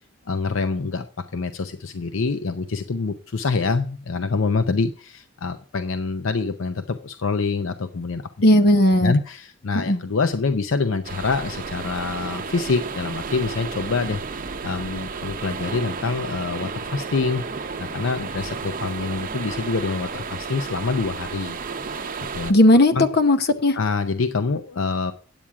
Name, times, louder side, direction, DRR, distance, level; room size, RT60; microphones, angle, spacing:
voice 1, 0.3-1.1 1.3-8.5 9.0-14.2 14.6-17.4 17.8-21.6 21.9-22.0 22.3-23.0 23.7-25.1, left 4 dB, 70° left, 9 dB, 0.6 m, -26 dB
voice 2, 8.4-9.1 9.7-10.0 22.5-23.8, left 1 dB, 55° left, 9 dB, 1.0 m, -16 dB
sound 1, 11.0-22.5, right 4 dB, 45° right, 0.8 m, -32 dB
9.0 x 8.6 x 4.7 m, 0.39 s
head